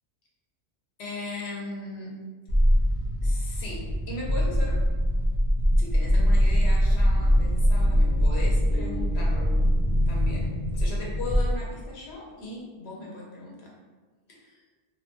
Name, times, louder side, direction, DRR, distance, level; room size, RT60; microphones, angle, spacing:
voice 1, 1.0-2.2 3.2-4.8 5.8-9.6 10.1-13.8 14.3-14.6, left 2 dB, 75° left, -3 dB, 0.9 m, -38 dB
sound 1, 2.5-11.9, equal, 60° left, 0.3 m, -23 dB
sound 2, 5.5-10.5, right 2 dB, 80° right, 0.9 m, -43 dB
2.6 x 2.1 x 2.8 m, 1.4 s
omnidirectional pair, 1.1 m